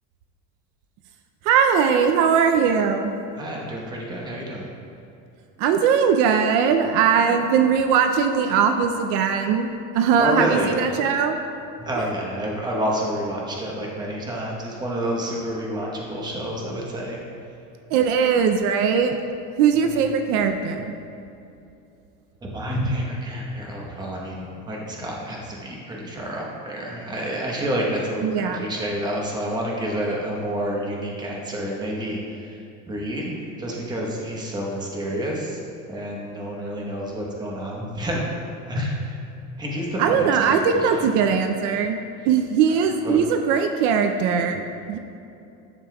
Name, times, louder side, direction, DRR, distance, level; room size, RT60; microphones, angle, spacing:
voice 1, 1.4-3.1 5.6-9.7 9.9-11.4 17.9-19.1 19.6-20.9 28.2-28.6 40.0-42.0 42.3-45.0, right 6 dB, 70° right, 6 dB, 0.5 m, -20 dB
voice 2, 3.3-4.6 7.3-7.4 10.2-10.7 11.8-17.2 19.8-19.9 22.4-35.6 35.9-38.2 38.6-39.2 39.6-41.3 43.0-43.2, right 1 dB, 15° right, -2 dB, 1.0 m, -29 dB
11.0 x 6.8 x 2.3 m, 2.7 s
cardioid pair, 155°, 32 cm